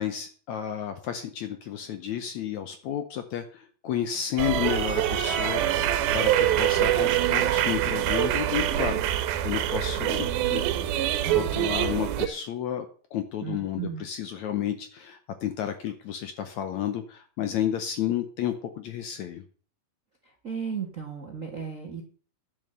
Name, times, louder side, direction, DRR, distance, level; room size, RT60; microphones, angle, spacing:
voice 1, 0.0-10.8 11.3-12.9 13.1-19.4, left 10 dB, 70° left, 9 dB, 1.8 m, -32 dB
sound 1, 4.4-12.3, right 11 dB, 90° right, 2.8 m, -25 dB
voice 2, 13.4-14.0 20.4-22.0, right 6 dB, 65° right, 2 dB, 0.8 m, -34 dB
10.5 x 7.2 x 6.8 m, 0.43 s
omnidirectional pair, 4.2 m